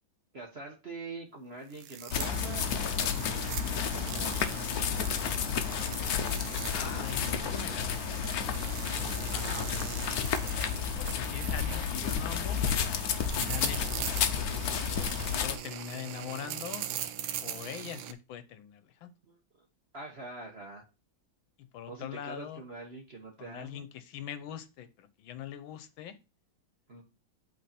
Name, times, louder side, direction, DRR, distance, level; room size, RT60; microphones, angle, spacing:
voice 1, 0.3-4.5 6.5-7.6 9.3-9.9 17.8-17.9 19.2-19.4 19.9-20.8 21.9-23.8 26.9-27.0, right 3 dB, 40° right, 0 dB, 1.1 m, -45 dB
sound 1, 1.7-18.1, right 10 dB, 80° right, 1.4 m, -41 dB
sound 2, 2.1-15.6, left 7 dB, 60° left, 1.1 m, -31 dB
voice 2, 6.7-8.9 11.0-12.7 13.1-14.0 15.0-16.9 17.4-19.1 21.6-22.6 23.4-26.2, left 10 dB, 80° left, 12 dB, 1.5 m, -43 dB
8.4 x 3.8 x 4.3 m, 0.29 s
omnidirectional pair, 2.2 m